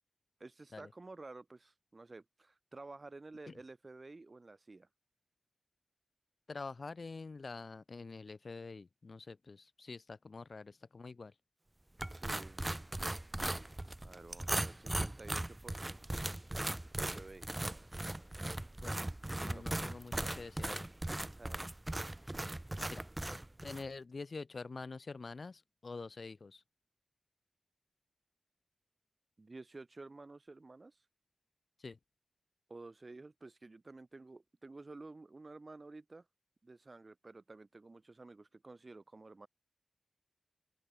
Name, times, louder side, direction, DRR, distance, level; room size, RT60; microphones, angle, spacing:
voice 1, 0.4-4.9 12.1-12.7 14.0-16.2 16.4-16.6 17.0-17.5 19.4-19.8 21.3-21.6 29.4-31.0 32.7-36.2 36.6-39.5, right 3 dB, 40° right, 3.0 m, -52 dB
voice 2, 6.5-11.3 18.8-19.0 19.4-20.9 22.9-23.0 23.6-26.6 31.8-32.0, left 4 dB, 55° left, 2.6 m, -46 dB
sound 1, 12.0-23.9, right 1 dB, 20° right, 0.6 m, -39 dB
open air
wide cardioid pair, 85°, 0 cm